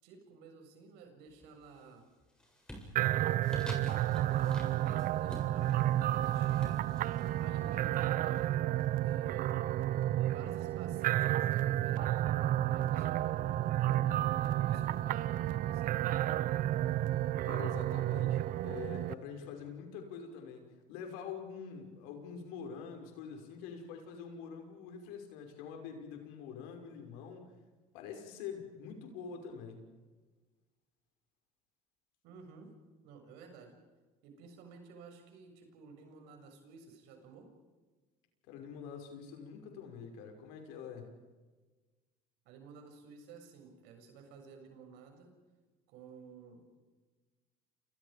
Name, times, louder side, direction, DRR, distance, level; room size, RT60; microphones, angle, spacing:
voice 1, 0.0-2.1 3.0-8.5 9.0-9.6 10.3-12.2 12.7-16.1 32.2-32.7 33.0-33.7 34.2-37.5 42.5-45.3 45.9-46.6, right 5 dB, 75° right, 4 dB, 7.2 m, -53 dB
sound 1, 1.3-1.8 2.2-8.8, equal, 5° left, 7.9 m, -51 dB
sound 2, 3.0-19.1, right 13 dB, 55° right, 0.8 m, -31 dB
voice 2, 17.4-27.5 27.9-29.9 38.5-41.1, left 6 dB, 80° left, 4 dB, 6.0 m, -45 dB
30.0 x 28.5 x 5.3 m, 1.3 s
supercardioid pair, 95°, 17 cm